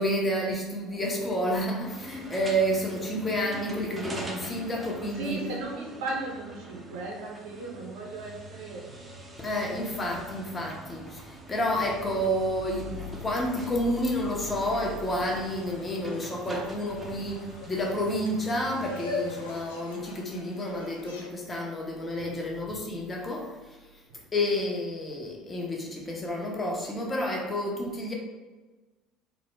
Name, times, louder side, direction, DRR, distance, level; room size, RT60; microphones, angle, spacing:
voice 1, 0.0-5.5 9.4-23.8 24.3-28.1, equal, 25° left, -1 dB, 0.7 m, -30 dB
sound 1, 1.8-19.6, right 2 dB, 25° right, 0.6 m, -44 dB
voice 2, 5.1-8.9 9.7-9.8 22.1-22.4 24.1-24.2, right 2 dB, 75° right, -1 dB, 0.4 m, -36 dB
sound 2, 14.6-21.3, left 3 dB, 85° left, 0.3 m, -42 dB
2.1 x 2.0 x 3.1 m, 1.2 s
hypercardioid pair, 70°, 0 cm